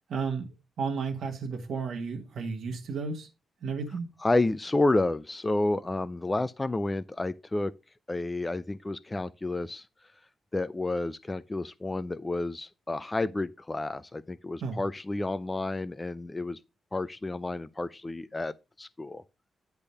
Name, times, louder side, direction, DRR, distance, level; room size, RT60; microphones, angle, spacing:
voice 1, 0.1-3.3 3.6-4.1 14.6-14.8, right 5 dB, 60° right, 1.4 m, -33 dB
voice 2, 4.2-7.7 8.1-9.9 10.5-16.6 16.9-18.5 18.8-19.2, left 2 dB, 15° left, 0.3 m, -30 dB
10.0 x 3.5 x 5.5 m
wide cardioid pair, 160°, 0 cm